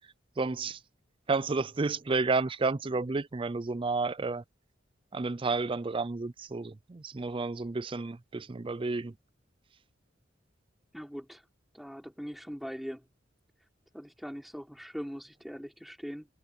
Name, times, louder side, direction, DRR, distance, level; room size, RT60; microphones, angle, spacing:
voice 1, 0.4-0.8 1.3-4.4 5.1-9.1, right 3 dB, 30° right, 0.4 m, -31 dB
voice 2, 10.9-11.5 11.7-13.0 13.9-16.3, equal, ahead, 3.8 m, -41 dB
head